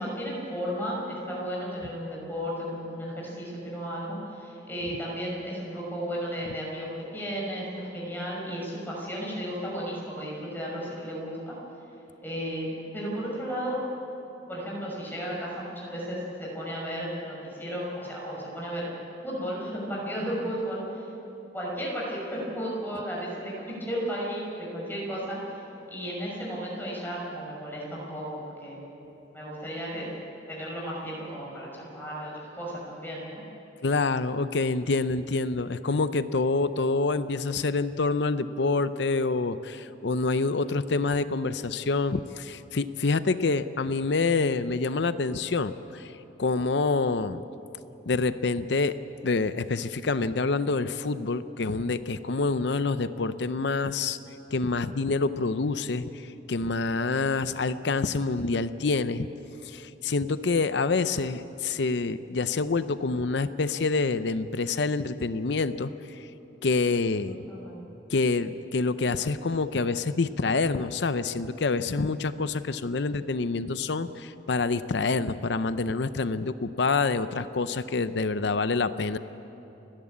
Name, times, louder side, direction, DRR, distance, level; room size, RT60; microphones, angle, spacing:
voice 1, 0.0-11.5 12.2-13.8 14.5-18.9 19.2-21.1 21.5-25.6 25.9-28.8 29.3-30.1 30.5-33.4 67.5-67.8, equal, 10° left, -4 dB, 5.9 m, -34 dB
voice 2, 33.8-46.1 46.4-47.4 48.1-49.0 49.2-54.2 54.5-59.3 59.6-66.3 66.6-67.4 68.1-79.2, left 3 dB, 65° left, 13 dB, 0.6 m, -27 dB
30.0 x 11.0 x 8.6 m, 3.0 s
head